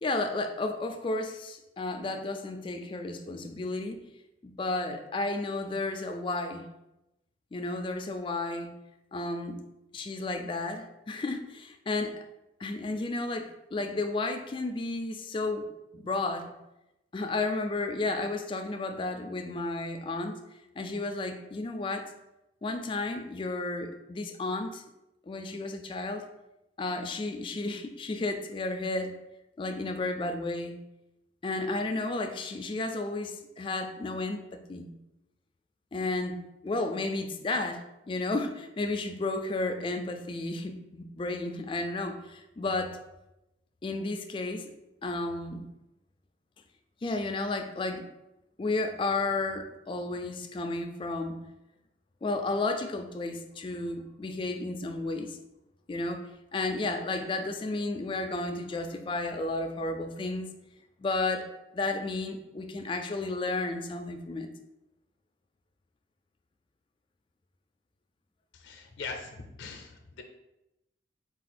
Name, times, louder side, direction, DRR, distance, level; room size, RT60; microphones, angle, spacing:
voice 1, 0.0-4.0 4.4-6.7 7.5-8.7 9.1-9.6 9.9-12.2 12.6-16.5 17.1-20.4 20.8-22.1 22.6-24.8 25.3-26.3 26.8-29.2 29.6-30.8 31.4-34.9 35.9-43.0 43.8-44.7 45.0-45.7 47.0-48.1 48.6-51.4 52.2-55.4 55.9-60.5 61.0-61.5 61.7-64.5, left 2 dB, 30° left, 6 dB, 0.3 m, -32 dB
voice 2, 68.5-70.2, left 4 dB, 90° left, 4 dB, 0.5 m, -41 dB
4.1 x 2.3 x 4.1 m, 0.92 s
head